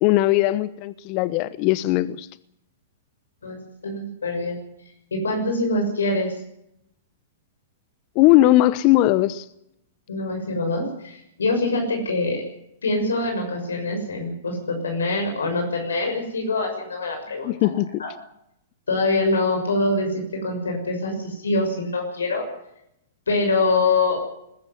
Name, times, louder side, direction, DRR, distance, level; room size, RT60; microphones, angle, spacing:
voice 1, 0.0-2.3 8.1-9.5 17.4-18.0, left 16 dB, 45° left, 0.9 m, -19 dB
voice 2, 3.4-4.6 5.1-6.3 10.1-12.4 12.8-17.7 18.0-18.1 18.9-22.5 23.3-24.3, left 2 dB, 90° left, 6.5 m, -24 dB
21.0 x 14.5 x 9.5 m
hypercardioid pair, 120°, 0 cm